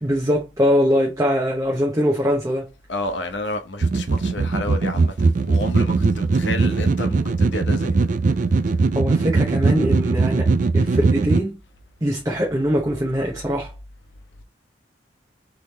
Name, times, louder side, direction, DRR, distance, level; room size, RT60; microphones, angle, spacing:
voice 1, 0.0-2.7 8.9-11.6 12.0-13.7, equal, 20° right, 0.9 m, -22 dB
voice 2, 2.9-5.2 5.5-8.1, left 2 dB, 80° left, 0.9 m, -30 dB
sound 1, 3.8-11.4, right 4 dB, 45° right, 0.4 m, -20 dB
3.8 x 3.3 x 4.1 m
head